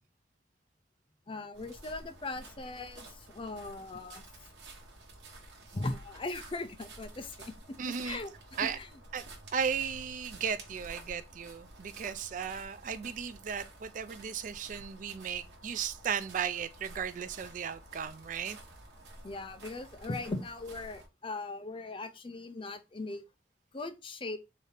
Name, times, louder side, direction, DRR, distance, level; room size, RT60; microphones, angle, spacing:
voice 1, 1.3-4.2 5.7-7.5 8.0-8.3 8.6-8.9 19.2-23.2 23.7-24.4, left 2 dB, 30° left, 0.5 m, -39 dB
sound 1, 1.5-21.1, right 2 dB, 80° right, 1.1 m, -51 dB
voice 2, 7.8-8.2 8.6-8.8 9.1-9.2 9.5-18.6, right 7 dB, 45° right, 0.3 m, -35 dB
3.9 x 2.7 x 3.3 m
head